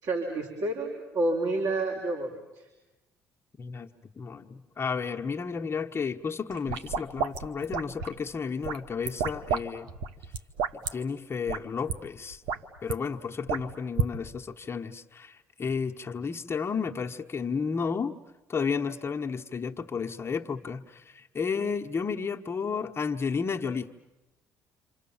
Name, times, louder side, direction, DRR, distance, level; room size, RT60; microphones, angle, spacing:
voice 1, 0.0-2.7, right 2 dB, 60° right, 0 dB, 4.4 m, -29 dB
voice 2, 3.6-3.9 4.2-9.9 10.9-12.4 12.8-18.1 18.5-23.9, left 5 dB, 35° left, 3 dB, 1.3 m, -32 dB
sound 1, 6.5-8.2 8.6-9.6 9.9-10.9 11.5-11.6 11.9-12.0 12.3-12.9 13.5-14.1, right 6 dB, 80° right, 1.3 m, -31 dB
28.5 x 26.0 x 7.3 m, 1.1 s
supercardioid pair, 65°, 7 cm